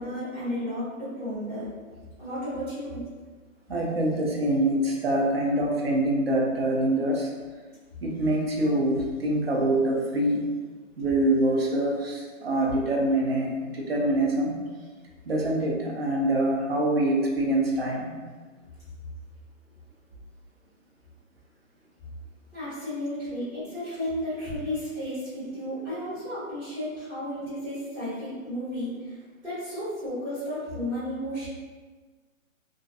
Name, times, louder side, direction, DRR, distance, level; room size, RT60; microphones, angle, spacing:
voice 1, 0.0-1.7 2.2-3.0 22.5-29.0 29.4-31.5, equal, 10° right, -18 dB, 1.2 m, -33 dB
voice 2, 3.7-7.3 8.0-10.5 11.0-14.6 15.3-18.2, right 1 dB, 50° right, -1 dB, 0.5 m, -25 dB
2.5 x 2.4 x 2.4 m, 1.4 s
hypercardioid pair, 165°, 41 cm